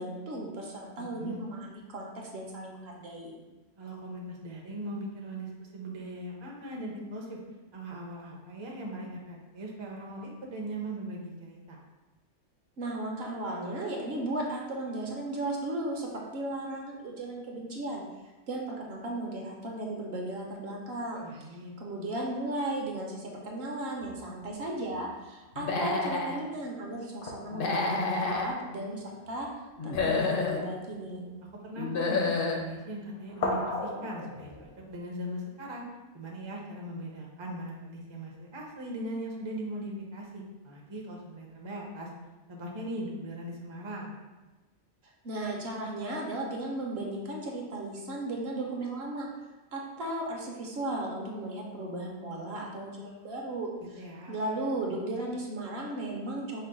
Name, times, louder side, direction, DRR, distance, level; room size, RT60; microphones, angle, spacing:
voice 1, 0.0-3.4 12.8-18.0 18.5-21.2 21.8-29.5 29.8-31.4 45.2-49.3 49.7-53.7 54.3-56.6, right 1 dB, 60° right, -1 dB, 0.9 m, -35 dB
voice 2, 1.0-1.4 3.8-7.4 7.7-11.8 21.2-21.7 31.5-35.8 36.1-42.1 42.5-44.2 53.8-54.4, right 1 dB, 35° right, -1 dB, 0.5 m, -39 dB
sound 1, 24.0-25.1 27.2-29.5 30.3-30.5 30.8-31.5 32.4-32.8 33.2-35.0, left 2 dB, 75° left, 1.1 m, -38 dB
Human voice / Animal, 25.6-26.4 27.5-28.5 29.8-30.6 31.8-32.6, left 3 dB, 55° left, 0.7 m, -29 dB
5.4 x 2.1 x 3.8 m, 1.1 s
omnidirectional pair, 1.3 m